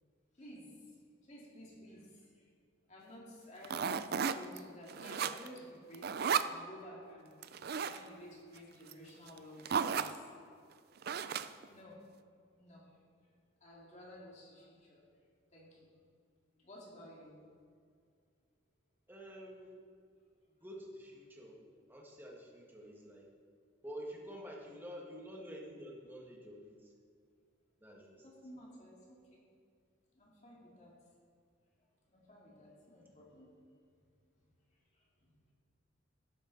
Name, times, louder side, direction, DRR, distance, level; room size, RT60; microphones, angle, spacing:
voice 1, 0.4-1.0 1.2-2.5 2.9-7.6 7.9-10.6 11.7-12.0 12.6-12.8 13.6-15.0 15.5-15.9 16.6-17.3 28.2-29.4 30.1-30.9 32.1-33.5 34.9-35.3, equal, 35° left, -4 dB, 2.3 m, -53 dB
sound 1, 3.6-4.6 4.9-5.6 5.9-6.5 7.4-8.0 8.9-9.0 9.3-9.4 9.6-10.2 11.0-11.6, right 6 dB, 55° right, 0.4 m, -34 dB
voice 2, 19.1-19.7 20.6-21.6 21.9-23.3 23.8-26.9 27.8-28.3, equal, 10° right, -1 dB, 1.7 m, -48 dB
12.0 x 10.5 x 4.0 m, 2.2 s
head